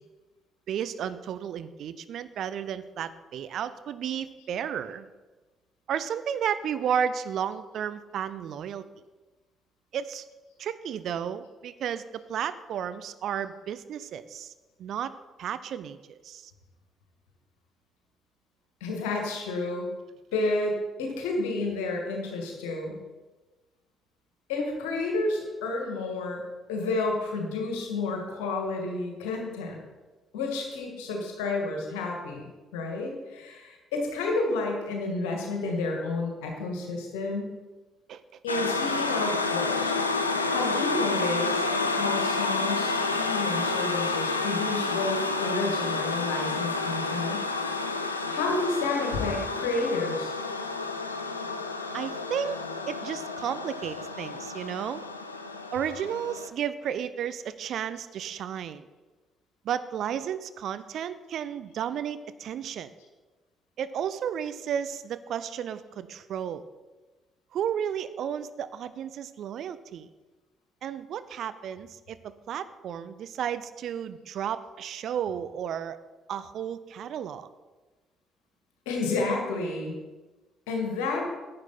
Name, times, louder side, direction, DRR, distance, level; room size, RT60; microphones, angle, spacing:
voice 1, 0.7-5.1 5.9-8.8 9.9-10.3 10.6-14.5 14.8-15.1 15.4-16.5 38.1-38.2 38.9-39.0 43.2-43.4 51.9-52.6 52.9-55.0 55.7-58.9 59.6-62.9 63.8-66.7 67.5-70.1 70.8-72.2 72.5-76.0 76.3-77.5, right 8 dB, 55° right, 13 dB, 0.5 m, -33 dB
voice 2, 18.8-19.9 20.3-23.0 24.5-26.4 26.7-29.8 30.3-37.6 38.4-41.6 41.9-47.5 48.3-50.3 78.9-80.0 80.7-81.3, left 3 dB, 70° left, 1 dB, 1.9 m, -30 dB
sound 1, 38.5-56.5, left 3 dB, 85° left, 0.4 m, -30 dB
10.5 x 8.7 x 4.2 m, 1.2 s
figure-of-eight pair, 45°, 0 cm